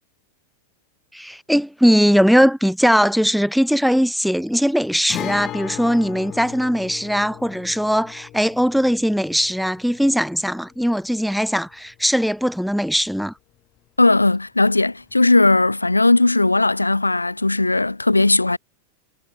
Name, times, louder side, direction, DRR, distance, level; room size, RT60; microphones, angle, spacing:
voice 1, 1.1-13.3, equal, ahead, 0.5 m, -19 dB
Guitar, 5.1-12.7 13.0-13.1 15.1-15.2, left 14 dB, 35° left, 7.5 m, -37 dB
voice 2, 14.0-18.6, left 2 dB, 85° left, 0.5 m, -17 dB
figure-of-eight pair, 90°, 0 cm